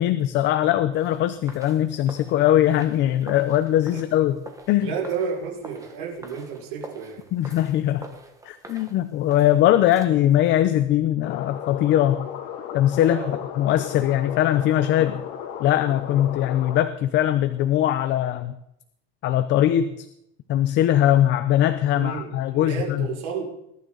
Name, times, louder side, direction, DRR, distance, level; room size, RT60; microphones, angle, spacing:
voice 1, 0.0-4.4 4.7-4.9 7.3-8.1 8.4-12.3 12.7-15.2 15.6-18.6 19.2-20.1 20.5-23.1, left 12 dB, 35° left, 11 dB, 0.7 m, -21 dB
sound 1, 0.9-10.1, right 2 dB, 10° right, 1.4 m, -45 dB
voice 2, 4.8-7.2 13.0-13.4 21.9-23.4, right 6 dB, 75° right, -1 dB, 5.4 m, -31 dB
sound 2, 11.2-16.8, left 9 dB, 70° left, 2.8 m, -35 dB
21.0 x 12.0 x 3.9 m, 0.79 s
cardioid pair, 170°, 30 cm